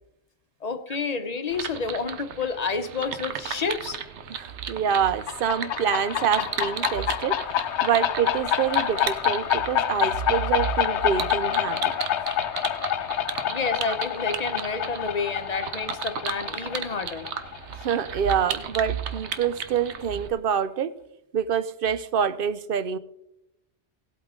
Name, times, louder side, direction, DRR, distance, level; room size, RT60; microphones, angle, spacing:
voice 1, 0.6-4.0 13.4-17.3, left 4 dB, 40° left, 9 dB, 0.9 m, -29 dB
sound 1, 1.5-20.3, right 7 dB, 85° right, 1.1 m, -36 dB
voice 2, 4.3-7.4 7.8-11.9 13.9-14.0 17.8-21.0 21.3-23.0, right 8 dB, 60° right, 13 dB, 0.7 m, -26 dB
sound 2, 5.1-18.5, left 10 dB, 85° left, 0.9 m, -27 dB
17.5 x 8.3 x 3.7 m, 0.84 s
omnidirectional pair, 1.1 m